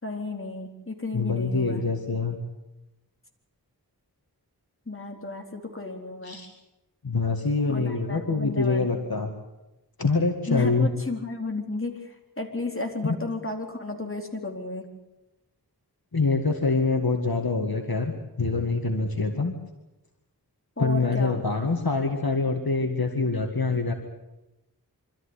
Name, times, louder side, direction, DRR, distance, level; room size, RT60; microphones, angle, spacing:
voice 1, 0.0-1.8 4.9-6.4 7.7-9.0 10.5-14.9 20.8-21.4, left 2 dB, 30° left, 2 dB, 4.1 m, -33 dB
voice 2, 1.1-2.4 6.2-6.5 7.0-9.3 10.0-10.9 16.1-18.1 18.4-19.5 20.8-23.9, left 3 dB, 65° left, 3 dB, 2.1 m, -25 dB
25.5 x 14.0 x 9.9 m, 0.99 s
wide cardioid pair, 50°, 39 cm